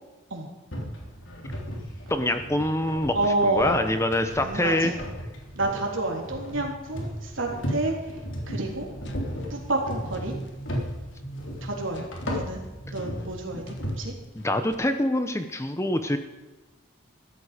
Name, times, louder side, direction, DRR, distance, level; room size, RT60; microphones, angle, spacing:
sound 1, 0.7-14.0, equal, 75° left, 3.5 m, -35 dB
voice 1, 2.1-3.1 3.4-4.9 13.5-13.6 14.3-16.2, left 1 dB, 15° left, 8 dB, 0.9 m, -25 dB
voice 2, 3.1-3.8 4.3-5.0 5.5-8.9 9.5-10.4 11.6-12.6 12.9-14.1, right 2 dB, 80° right, 0 dB, 3.5 m, -29 dB
sound 2, 9.0-10.6 11.9-14.7, equal, 60° left, 1.3 m, -46 dB
15.0 x 13.0 x 5.1 m, 1.2 s
head